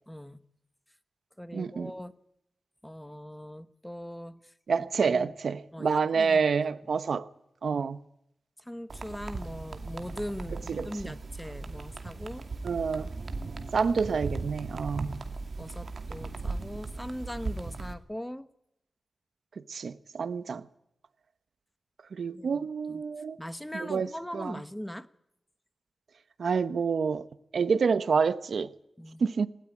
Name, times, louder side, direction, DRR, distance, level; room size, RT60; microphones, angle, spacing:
voice 1, 0.1-0.4 1.4-2.1 2.8-5.3 5.7-6.6 8.6-12.5 15.0-15.1 15.6-18.5 22.3-23.0 23.4-25.1 29.0-29.2, equal, 5° left, 1.2 m, -40 dB
voice 2, 1.5-1.9 4.7-7.3 7.6-8.0 10.7-11.1 12.6-13.1 13.7-15.2 19.7-20.6 22.1-23.4 23.7-24.1 24.3-24.5 26.4-27.3 27.5-28.7 29.2-29.5, right 5 dB, 75° right, 1.0 m, -28 dB
sound 1, 8.9-17.9, right 3 dB, 55° right, 2.5 m, -38 dB
19.0 x 17.5 x 10.0 m
wide cardioid pair, 115°, 0 cm